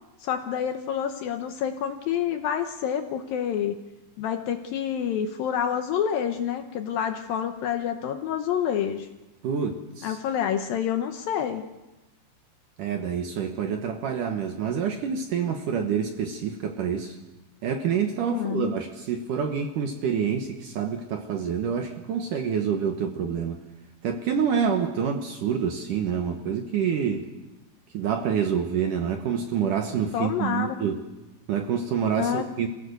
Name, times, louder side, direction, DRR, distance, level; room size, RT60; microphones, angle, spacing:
voice 1, 0.2-3.8 4.2-9.1 10.0-11.6 18.3-18.7 30.1-30.8 32.2-32.5, left 9 dB, 70° left, 6 dB, 2.3 m, -28 dB
voice 2, 9.4-10.2 12.8-17.2 17.6-23.6 24.0-27.3 27.9-31.0 31.5-32.7, right 7 dB, 65° right, 5 dB, 2.2 m, -27 dB
27.5 x 16.5 x 6.7 m, 1.0 s
omnidirectional pair, 5.0 m